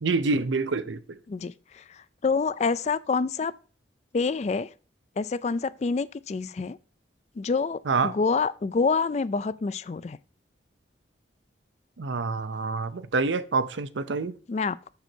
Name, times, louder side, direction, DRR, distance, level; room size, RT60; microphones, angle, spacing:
voice 1, 0.0-1.2 7.9-8.1 12.0-14.3, right 4 dB, 85° right, 0.6 m, -27 dB
voice 2, 1.3-3.5 4.1-4.7 5.2-6.8 7.4-10.2 14.5-14.9, left 4 dB, 35° left, 0.3 m, -27 dB
6.8 x 6.6 x 4.5 m
head